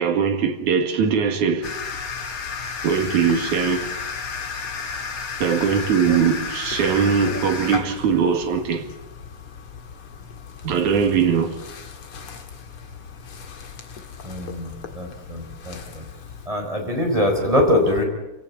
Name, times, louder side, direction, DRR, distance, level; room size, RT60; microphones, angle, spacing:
voice 1, 0.0-1.8 2.8-3.9 5.4-8.9 10.6-11.6, right 6 dB, 65° right, 3.2 m, -21 dB
sound 1, 1.6-16.5, left 5 dB, 45° left, 2.4 m, -34 dB
voice 2, 14.2-16.0 16.5-18.0, left 1 dB, 10° right, 4.1 m, -23 dB
26.5 x 17.0 x 8.5 m
omnidirectional pair, 3.9 m